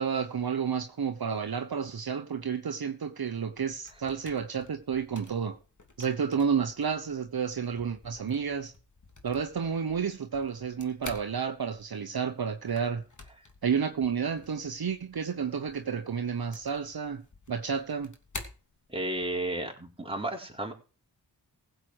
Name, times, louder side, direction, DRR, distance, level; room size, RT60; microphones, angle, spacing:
voice 1, 0.0-5.6 6.0-8.7 9.2-13.0 13.6-17.2 17.5-18.1, right 6 dB, 55° right, 1.2 m, -31 dB
sound 1, 3.5-19.4, left 3 dB, 40° left, 2.9 m, -50 dB
voice 2, 18.9-20.7, right 1 dB, 10° right, 3.9 m, -33 dB
16.0 x 7.9 x 4.8 m
cardioid pair, 40°, 44 cm